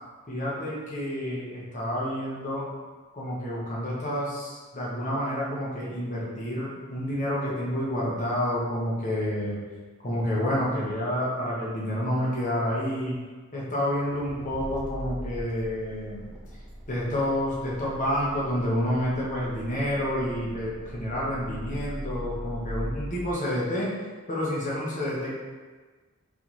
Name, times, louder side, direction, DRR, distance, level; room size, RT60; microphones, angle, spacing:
voice 1, 0.3-2.7 3.1-9.6 10.0-13.2 13.5-16.3 16.9-23.9 24.3-25.3, equal, 35° left, -6 dB, 1.0 m, -29 dB
Accelerating revving vroom, 13.7-23.3, equal, 5° right, 0.5 m, -40 dB
4.1 x 3.4 x 3.0 m, 1.4 s
head